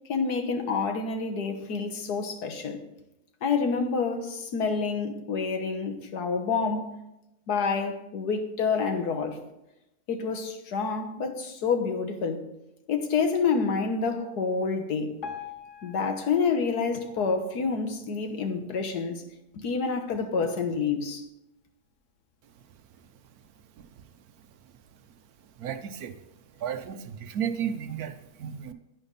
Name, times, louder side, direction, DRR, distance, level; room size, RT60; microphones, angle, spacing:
voice 1, 0.1-2.8 3.4-6.9 7.5-9.4 10.1-12.4 12.9-15.2 15.8-19.2 19.5-21.3, left 5 dB, 75° left, 1.7 m, -28 dB
Piano, 15.2-18.3 18.8-19.0 19.3-19.4 20.1-20.2 20.8-20.9, left 7 dB, 55° left, 1.4 m, -44 dB
voice 2, 25.6-26.2 26.6-28.7, right 8 dB, 70° right, 1.2 m, -33 dB
11.0 x 9.7 x 4.1 m
omnidirectional pair, 1.7 m